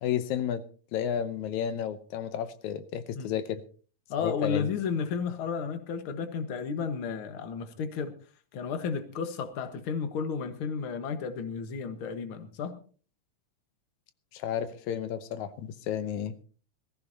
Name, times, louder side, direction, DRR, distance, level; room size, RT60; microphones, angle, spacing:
voice 1, 0.0-0.6 0.9-3.6 4.2-4.7 14.3-16.3, left 9 dB, 85° left, 2.3 m, -32 dB
voice 2, 4.1-8.1 8.5-12.8, left 6 dB, 50° left, 2.0 m, -33 dB
21.5 x 14.5 x 2.8 m
omnidirectional pair, 3.3 m